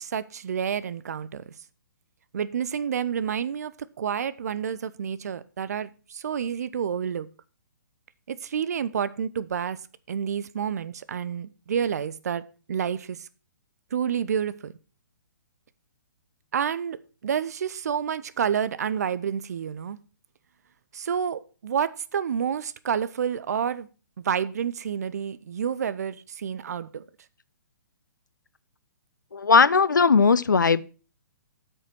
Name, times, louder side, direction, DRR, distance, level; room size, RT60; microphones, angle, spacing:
voice 1, 0.0-1.4 2.3-3.7 4.0-7.3 8.3-9.8 10.1-12.4 12.7-13.3 13.9-14.7 16.5-17.0 17.2-20.0 20.9-23.9 24.2-27.0, right 8 dB, 55° right, 0.7 m, -29 dB
voice 2, 29.3-30.8, left 5 dB, 75° left, 0.5 m, -18 dB
8.4 x 6.5 x 6.1 m
figure-of-eight pair, 125°, 10 cm